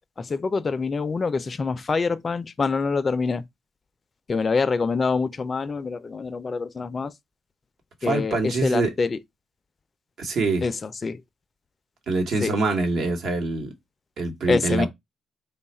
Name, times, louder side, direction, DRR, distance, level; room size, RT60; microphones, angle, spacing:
voice 1, 0.2-3.4 4.3-7.1 8.0-9.2 10.6-11.2 12.4-12.5 14.5-14.9, left 4 dB, 35° left, 0.4 m, -25 dB
voice 2, 8.0-8.9 10.2-10.6 12.1-13.7 14.2-14.9, right 3 dB, 65° right, 1.1 m, -24 dB
3.3 x 2.3 x 4.1 m
cardioid pair, 90°, 0 cm